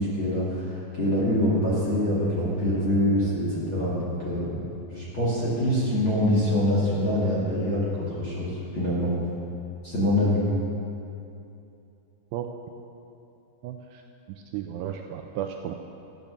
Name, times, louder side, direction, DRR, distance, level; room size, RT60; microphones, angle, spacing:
voice 1, 0.0-4.6 4.9-9.1 9.8-10.4, left 1 dB, 40° left, -7 dB, 2.1 m, -25 dB
voice 2, 13.6-14.0 14.3-15.8, right 10 dB, 80° right, 4 dB, 2.5 m, -34 dB
14.0 x 9.1 x 6.8 m, 2.7 s
omnidirectional pair, 5.3 m